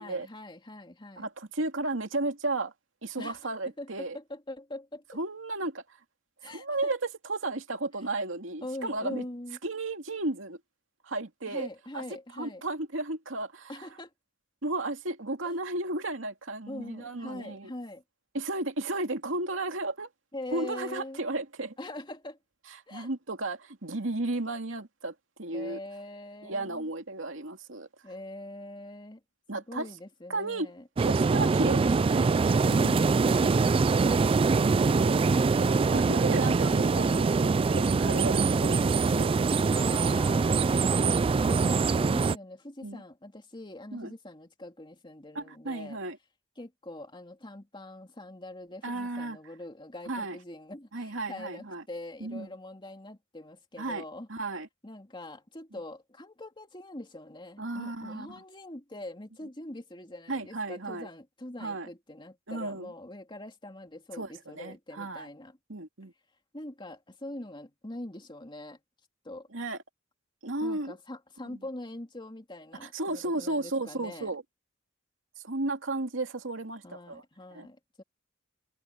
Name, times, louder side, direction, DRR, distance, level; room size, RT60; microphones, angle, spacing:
voice 1, 0.0-1.3 3.2-3.4 3.8-5.0 6.4-6.9 8.6-9.6 11.5-12.6 13.7-14.1 15.4-15.5 16.7-18.0 20.3-21.3 21.8-22.4 22.9-23.1 25.5-26.9 28.0-29.2 29.5-30.8 39.7-41.1 41.5-46.0 46.6-54.3 54.8-65.6 66.5-68.8 69.2-69.5 70.6-74.3 76.8-78.0, left 1 dB, 25° left, 2.7 m, -43 dB
voice 2, 1.2-2.7 3.0-4.2 5.1-6.0 6.5-7.0 7.3-9.2 9.6-10.6 11.0-11.7 11.9-12.0 12.4-13.9 14.6-17.7 18.3-20.1 20.5-21.7 22.9-25.8 26.4-27.9 29.5-29.9 30.3-30.7 31.0-32.5 34.8-35.2 35.6-39.3 42.8-43.0 43.9-44.1 45.3-46.2 48.8-49.4 50.1-50.4 50.9-51.8 52.2-52.5 53.8-54.0 54.3-54.7 57.6-58.3 60.3-61.1 61.6-61.9 62.5-62.9 64.2-65.3 65.7-66.1 69.5-69.8 70.4-71.0 71.5-71.6 72.8-74.4 75.4-77.2 77.5-77.7, right 2 dB, 75° right, 2.5 m, -34 dB
sound 1, 31.0-42.4, right 4 dB, 30° right, 0.3 m, -24 dB
head